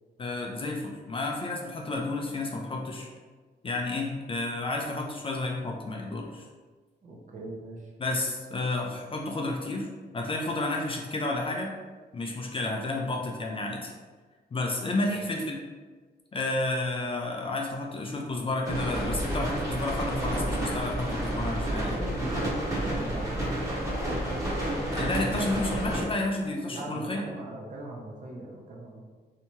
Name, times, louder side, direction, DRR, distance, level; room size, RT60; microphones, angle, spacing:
voice 1, 0.2-3.1 3.6-6.5 8.0-9.9 10.1-11.7 12.1-13.9 14.5-15.6 16.3-22.0 24.9-27.2, left 2 dB, 30° left, 0 dB, 0.4 m, -31 dB
voice 2, 7.0-7.9 15.0-15.2 21.5-24.2 26.7-29.0, right 2 dB, 45° right, -2 dB, 0.7 m, -41 dB
sound 1, 18.7-26.0, right 1 dB, 15° right, 0.9 m, -30 dB
3.3 x 2.7 x 3.0 m, 1.4 s
wide cardioid pair, 160°, 18 cm